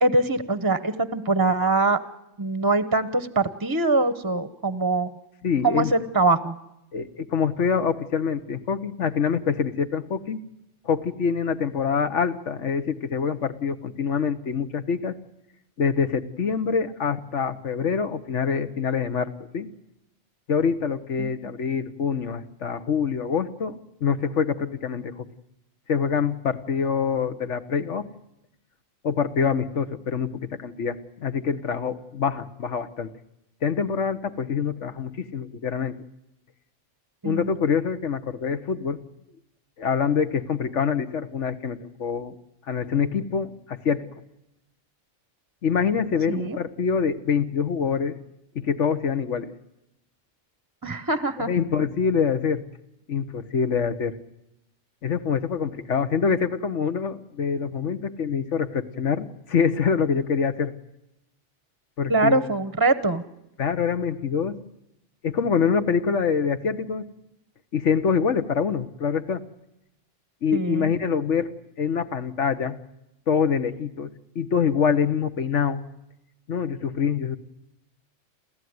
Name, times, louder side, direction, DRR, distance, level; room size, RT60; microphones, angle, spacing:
voice 1, 0.0-2.0 2.4-5.1 5.6-6.6 21.2-21.5 37.2-37.5 46.3-46.6 50.8-51.5 62.1-63.2 70.5-70.9, right 3 dB, 20° right, 14 dB, 0.8 m, -23 dB
voice 2, 5.4-5.9 6.9-10.4 10.8-15.1 15.8-19.7 20.5-25.2 25.9-28.1 29.0-33.1 33.6-35.9 37.2-39.0 39.8-42.3 42.7-44.1 45.6-48.2 48.5-49.5 51.4-52.6 53.1-54.2 55.0-60.7 62.0-62.4 63.6-64.6 65.2-67.1 67.7-69.4 70.4-71.5 71.8-72.8 73.3-74.1 74.3-75.8 76.5-77.4, left 6 dB, 75° left, 10 dB, 1.4 m, -25 dB
28.5 x 14.5 x 9.5 m, 0.86 s
omnidirectional pair, 1.3 m